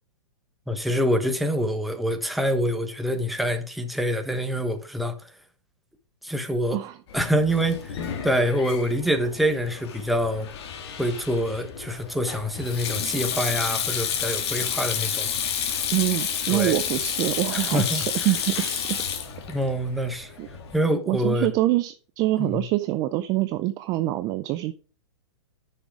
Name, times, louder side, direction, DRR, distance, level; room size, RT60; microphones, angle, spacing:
voice 1, 0.7-5.3 6.2-6.8 7.1-10.5 11.0-15.3 16.5-16.8 17.5-18.3 19.5-20.3 20.7-21.5 22.4-22.6, equal, ahead, 1.0 m, -26 dB
Sink (filling or washing), 7.1-20.8, left 7 dB, 55° left, 2.4 m, -30 dB
voice 2, 15.9-19.0 20.4-20.5 21.1-24.7, right 16 dB, 25° right, 0.4 m, -25 dB
9.8 x 6.3 x 4.7 m
hypercardioid pair, 150°, 16 cm